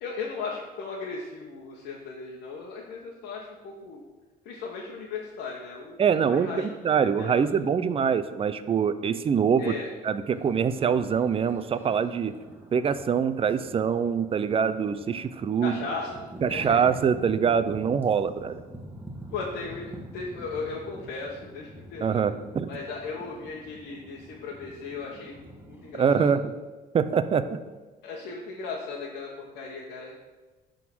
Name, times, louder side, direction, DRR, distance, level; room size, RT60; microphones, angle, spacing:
voice 1, 0.0-4.0 4.4-7.5 9.6-9.9 15.6-16.1 16.5-16.9 19.3-22.2 22.7-25.4 25.6-26.3 28.0-30.1, left 4 dB, 80° left, -2 dB, 1.3 m, -37 dB
voice 2, 6.0-9.7 10.0-12.3 12.7-15.8 16.4-18.6 22.0-22.7 25.9-26.4 26.9-27.4, right 7 dB, 35° right, 12 dB, 0.5 m, -24 dB
sound 1, 10.3-26.2, right 1 dB, 10° right, 1.4 m, -46 dB
11.0 x 3.8 x 6.1 m, 1.2 s
cardioid pair, 110°, 17 cm